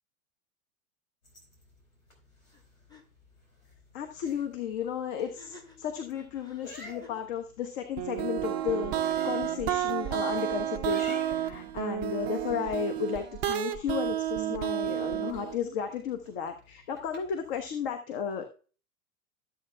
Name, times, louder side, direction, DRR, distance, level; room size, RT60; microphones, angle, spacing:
sound 1, 1.2-17.7, left 1 dB, 70° left, 4.3 m, -53 dB
sound 2, 2.5-2.6 2.9-3.0 5.2-7.3, left 4 dB, 10° left, 1.3 m, -53 dB
voice 1, 3.9-18.6, left 7 dB, 40° left, 6 dB, 1.1 m, -34 dB
sound 3, 8.0-15.6, right 11 dB, 20° right, 0.4 m, -31 dB
13.5 x 8.2 x 2.2 m, 0.37 s
figure-of-eight pair, 95°, 43 cm